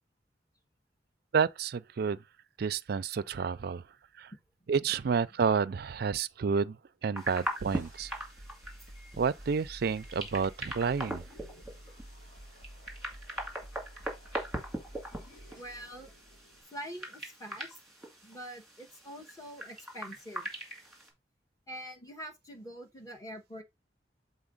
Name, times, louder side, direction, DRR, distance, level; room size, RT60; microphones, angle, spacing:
voice 1, 1.3-2.2 2.6-3.8 4.2-4.3 4.7-6.8 7.0-8.1 9.2-11.2, right 6 dB, 60° right, 0.4 m, -30 dB
sound 1, 7.2-21.1, right 1 dB, ahead, 2.4 m, -41 dB
sound 2, 7.6-16.6, equal, 45° left, 2.3 m, -50 dB
voice 2, 15.6-16.1 16.7-17.8 18.2-20.5 21.7-23.6, equal, 20° left, 1.5 m, -45 dB
7.1 x 4.0 x 3.8 m
head